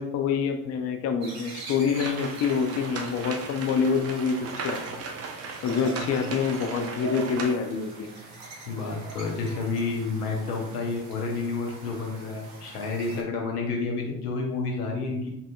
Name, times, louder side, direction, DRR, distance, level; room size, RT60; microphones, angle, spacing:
voice 1, 0.0-4.8 5.6-8.1, left 6 dB, 35° left, 7 dB, 0.5 m, -26 dB
sound 1, 1.2-13.2, right 3 dB, 50° right, 1.1 m, -43 dB
sound 2, 1.9-7.5, right 4 dB, 35° right, 0.6 m, -37 dB
voice 2, 8.7-15.3, left 3 dB, 85° left, 0 dB, 0.8 m, -30 dB
5.4 x 2.7 x 2.2 m, 0.85 s
figure-of-eight pair, 55°, 45 cm